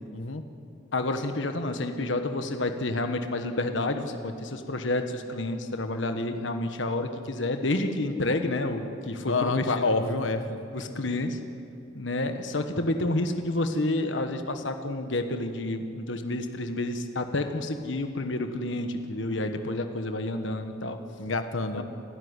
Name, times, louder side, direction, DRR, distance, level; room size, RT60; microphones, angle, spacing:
voice 1, 0.9-10.1 10.7-11.4 11.9-21.0 21.7-21.8, left 2 dB, 70° left, 7 dB, 1.3 m, -29 dB
voice 2, 9.3-10.6 21.2-21.8, left 3 dB, 90° left, 8 dB, 1.3 m, -27 dB
28.0 x 13.0 x 9.7 m, 2.6 s
head